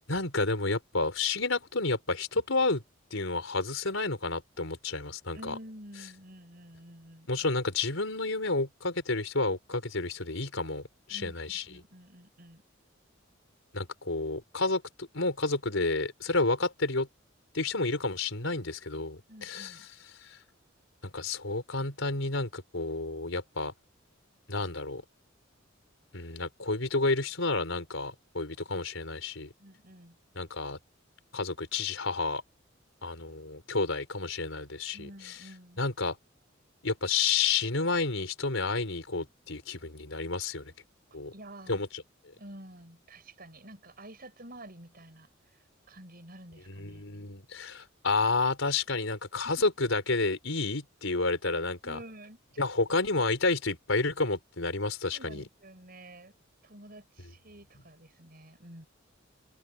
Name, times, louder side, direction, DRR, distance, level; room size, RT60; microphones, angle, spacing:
voice 1, 0.1-2.8 3.1-5.5 7.3-10.8 11.1-11.6 13.7-17.1 17.5-19.8 20.2-20.4 21.0-23.7 24.5-25.0 26.1-29.5 30.4-30.8 31.3-32.4 33.0-35.4 35.8-36.2 36.8-40.7 41.1-41.3 41.7-42.0 46.7-52.0 52.6-55.4, left 3 dB, 90° left, 4.2 m, -30 dB
voice 2, 5.3-7.3 11.1-12.6 19.3-19.9 29.6-30.2 34.9-35.8 41.1-41.8 42.4-47.3 51.8-52.7 55.1-56.3 56.6-58.9, right 1 dB, 50° right, 6.6 m, -49 dB
head